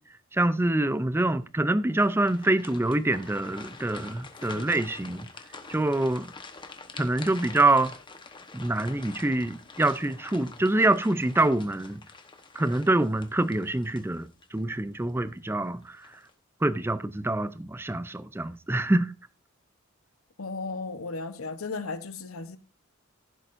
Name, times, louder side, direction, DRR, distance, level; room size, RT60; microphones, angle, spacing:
voice 1, 0.3-5.3 5.7-6.3 7.0-7.9 8.5-12.0 12.6-16.1 16.6-19.1, right 2 dB, 10° right, 0.4 m, -25 dB
sound 1, 1.9-14.6 15.1-15.2 15.8-16.3, left 4 dB, 25° left, 1.0 m, -46 dB
voice 2, 20.4-22.6, left 3 dB, 85° left, 0.9 m, -35 dB
15.0 x 7.7 x 2.6 m
head